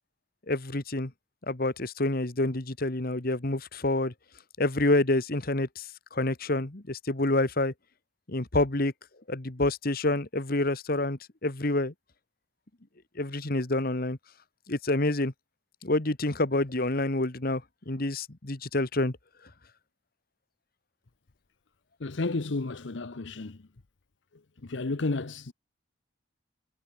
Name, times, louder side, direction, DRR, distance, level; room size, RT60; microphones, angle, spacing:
voice 1, 0.5-1.1 1.5-4.1 4.6-7.7 8.3-8.9 9.3-11.9 13.1-14.2 14.7-15.3 15.8-19.2, left 2 dB, 50° left, 1.6 m, -28 dB
voice 2, 22.0-23.7 24.6-25.5, left 3 dB, 70° left, 0.9 m, -32 dB
head